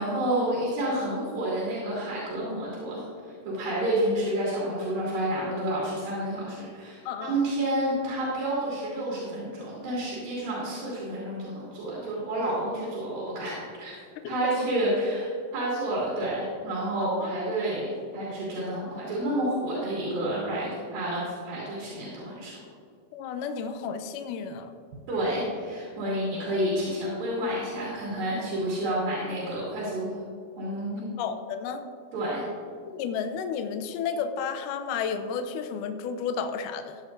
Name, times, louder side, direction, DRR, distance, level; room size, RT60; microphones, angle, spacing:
voice 1, 0.0-3.0 3.5-13.9 14.3-22.6 25.1-30.1 30.6-31.2 32.1-32.4, right 1 dB, 85° right, -7 dB, 4.3 m, -29 dB
voice 2, 7.1-7.4 14.2-14.7 17.2-17.3 23.1-24.7 31.2-31.9 32.9-37.0, left 6 dB, 80° left, 8 dB, 2.0 m, -32 dB
14.5 x 11.0 x 2.6 m, 2.2 s
omnidirectional pair, 4.1 m